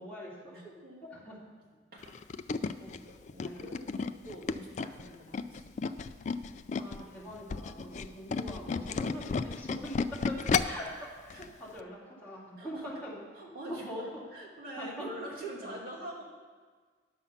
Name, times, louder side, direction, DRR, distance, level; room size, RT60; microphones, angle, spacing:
voice 1, 0.0-0.6 1.1-1.4 2.8-2.9 3.4-3.7 6.8-13.2 13.7-14.2 14.8-15.1 15.6-15.8, equal, 10° left, -8 dB, 2.7 m, -43 dB
voice 2, 0.5-1.2 1.9-2.2 2.7-3.7 4.2-5.7 11.3-11.4 12.6-12.9 13.4-16.2, right 1 dB, 55° right, -5 dB, 2.5 m, -45 dB
Tools, 2.0-7.0 7.4-10.9 11.3-11.5 11.8-11.9, left 5 dB, 40° left, 0.3 m, -33 dB
11.0 x 7.1 x 5.8 m, 1.5 s
head